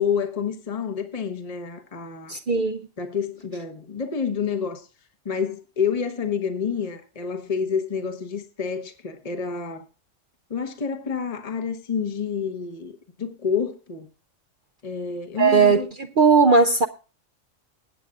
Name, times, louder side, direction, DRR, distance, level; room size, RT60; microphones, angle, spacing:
voice 1, 0.0-2.3 3.0-4.9 5.2-9.8 10.5-14.1 14.8-15.9, left 6 dB, 30° left, 1.2 m, -28 dB
voice 2, 2.3-2.9 15.4-16.9, right 4 dB, 50° right, 0.7 m, -18 dB
20.5 x 8.6 x 2.4 m
omnidirectional pair, 1.3 m